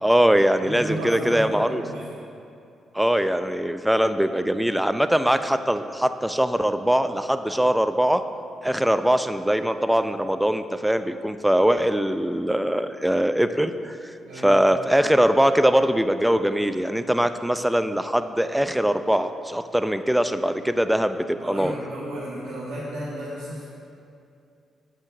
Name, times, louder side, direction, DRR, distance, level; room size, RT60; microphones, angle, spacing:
voice 1, 0.0-1.8 2.9-8.2 8.6-14.1 14.4-21.7, equal, 5° right, 10 dB, 0.5 m, -22 dB
voice 2, 0.6-2.0 14.2-14.5 21.3-23.6, right 1 dB, 80° right, -9 dB, 1.7 m, -33 dB
9.2 x 5.8 x 6.2 m, 2.5 s
hypercardioid pair, 45°, 0 cm